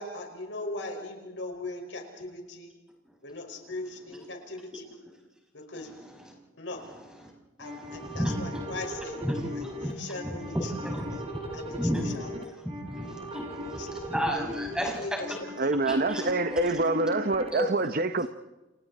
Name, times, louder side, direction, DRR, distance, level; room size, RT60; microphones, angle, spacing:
voice 1, 0.0-2.8 3.2-4.9 5.5-5.9 6.5-6.9 7.6-9.2 9.5-10.9 11.5-12.3 13.0-13.2 13.8-13.9 15.0-15.8, left 2 dB, 85° left, 5.4 m, -39 dB
voice 2, 7.6-8.6 9.2-9.4 9.8-12.2 12.8-15.4 15.8-16.2 16.5-16.6 17.5-17.7, equal, 5° right, 5.8 m, -33 dB
sound 1, 7.6-17.5, left 1 dB, 30° right, 3.9 m, -38 dB
voice 3, 15.6-18.3, right 2 dB, 50° right, 0.9 m, -26 dB
29.5 x 29.5 x 4.3 m
head